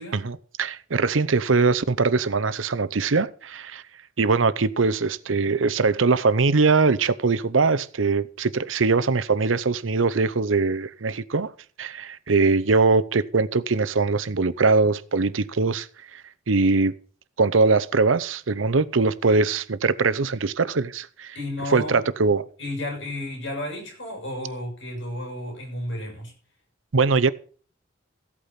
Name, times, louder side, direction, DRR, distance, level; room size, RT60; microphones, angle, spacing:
voice 1, 0.1-3.8 4.2-11.5 11.8-16.9 17.4-21.3 21.7-22.4 26.9-27.3, right 4 dB, 90° right, 0.8 m, -22 dB
voice 2, 21.3-22.1 22.6-26.3, left 1 dB, 65° left, 7.1 m, -32 dB
15.0 x 8.5 x 5.8 m
head